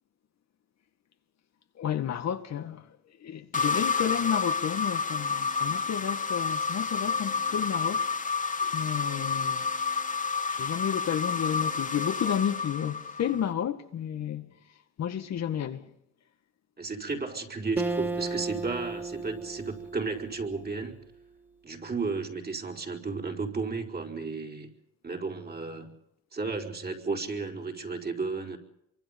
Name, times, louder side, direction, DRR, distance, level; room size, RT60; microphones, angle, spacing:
voice 1, 1.8-2.9 3.2-8.1 8.7-9.7 10.5-14.5 15.0-15.9, left 9 dB, 60° left, 1.9 m, -31 dB
sound 1, 3.5-13.5, left 5 dB, 25° left, 2.3 m, -30 dB
voice 2, 16.8-21.0 21.6-24.7 25.0-26.0 26.3-28.6, right 4 dB, 30° right, 4.8 m, -33 dB
Acoustic guitar, 17.8-21.3, right 3 dB, 5° right, 1.8 m, -35 dB
26.5 x 24.5 x 5.4 m
cardioid pair, 90°, 30 cm